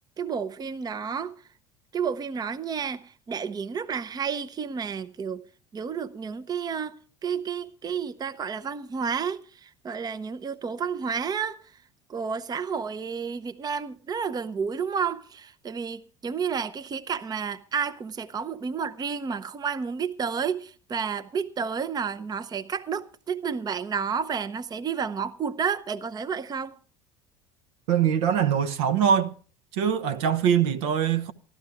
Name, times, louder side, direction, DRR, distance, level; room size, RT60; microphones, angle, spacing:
voice 1, 0.2-1.3 1.9-5.4 5.7-11.6 12.1-26.8, right 6 dB, 25° right, 0.7 m, -31 dB
voice 2, 27.9-29.3 29.7-31.3, right 8 dB, 65° right, 0.9 m, -23 dB
14.5 x 12.5 x 4.6 m
hypercardioid pair, 70°, 16 cm